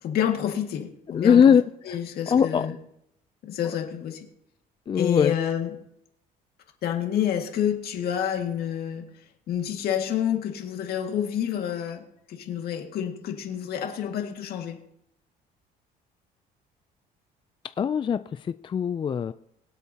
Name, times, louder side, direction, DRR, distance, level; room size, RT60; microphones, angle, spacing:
voice 1, 0.0-1.4 1.9-2.7 3.5-4.2 5.0-5.7 6.8-9.0 9.5-12.0 12.3-14.8, left 9 dB, 65° left, 3 dB, 2.0 m, -28 dB
voice 2, 1.1-1.6 1.9-2.0 2.3-2.7 4.9-5.4 17.8-19.3, left 7 dB, 30° left, 12 dB, 0.4 m, -21 dB
23.5 x 8.2 x 2.9 m, 0.77 s
cardioid pair, 110°, 17 cm